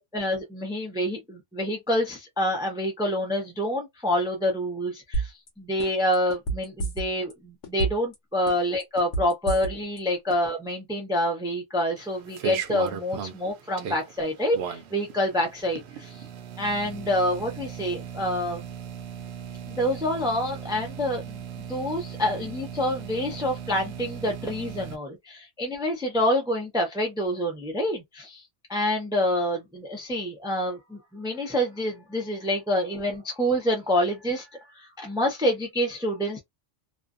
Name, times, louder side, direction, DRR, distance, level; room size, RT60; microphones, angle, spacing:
voice 1, 0.1-16.2 16.6-18.7 19.7-21.4 21.7-28.4 28.7-36.4, left 1 dB, 5° right, 0.5 m, -27 dB
sound 1, 5.1-5.5 5.8-7.3 7.6-8.1 8.5-10.0 10.3-10.4, right 3 dB, 85° left, 1.1 m, -29 dB
sound 2, 12.0-25.0, right 7 dB, 65° right, 0.8 m, -38 dB
2.5 x 2.2 x 2.4 m
omnidirectional pair, 1.3 m